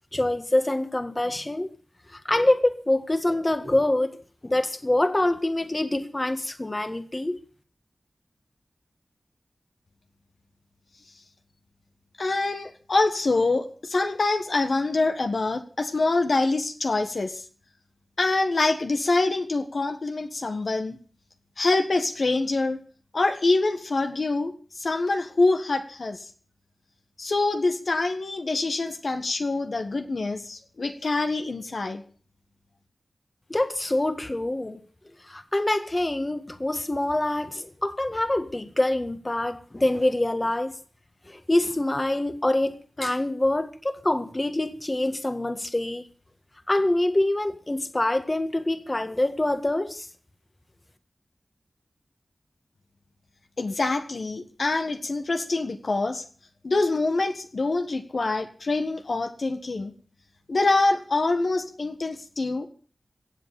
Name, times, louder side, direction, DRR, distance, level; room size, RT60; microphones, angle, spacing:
voice 1, 0.1-1.7 2.1-4.1 4.4-7.4 33.5-34.8 35.2-40.8 41.3-46.0 46.7-50.1, left 1 dB, 30° left, 1.7 m, -25 dB
voice 2, 12.2-17.4 18.2-21.0 21.6-22.8 23.1-26.2 27.2-32.0 53.6-56.2 56.6-59.9 60.5-62.7, left 3 dB, 70° left, 1.6 m, -25 dB
16.5 x 7.7 x 8.3 m
wide cardioid pair, 55°, 0 cm